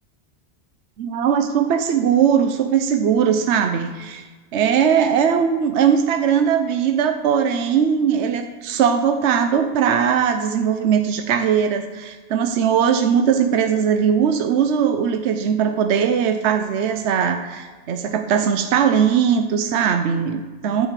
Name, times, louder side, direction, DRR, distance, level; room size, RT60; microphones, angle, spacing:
voice 1, 1.0-4.2 4.5-20.9, right 7 dB, 75° right, 6 dB, 1.0 m, -19 dB
13.0 x 4.9 x 7.4 m, 1.4 s
omnidirectional pair, 1.2 m